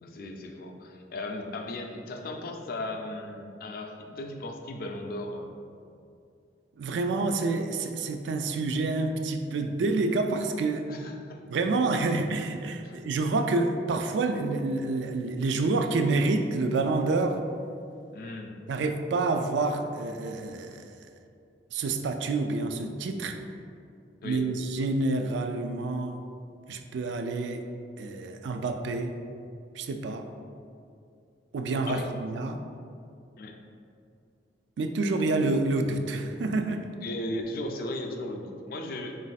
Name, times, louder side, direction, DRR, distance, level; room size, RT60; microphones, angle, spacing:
voice 1, 0.0-5.6 10.9-11.4 12.8-13.0 18.1-18.5 24.2-24.4 31.9-32.1 33.4-33.6 37.0-39.2, left 1 dB, 55° left, 3 dB, 0.4 m, -36 dB
voice 2, 6.8-10.9 11.5-17.4 18.7-20.9 21.7-23.4 24.2-26.2 26.7-27.6 28.0-29.1 29.8-30.3 31.5-32.6 34.8-36.9, right 3 dB, 90° right, 6 dB, 0.3 m, -28 dB
4.0 x 2.5 x 4.0 m, 2.5 s
head